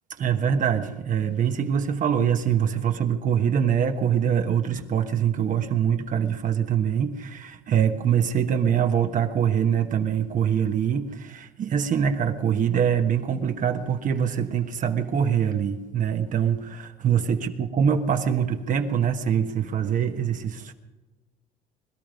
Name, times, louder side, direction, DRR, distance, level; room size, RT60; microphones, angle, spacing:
voice 1, 0.2-20.7, right 8 dB, 50° right, 1.3 m, -24 dB
21.0 x 12.5 x 5.2 m
cardioid pair, 110°, 17 cm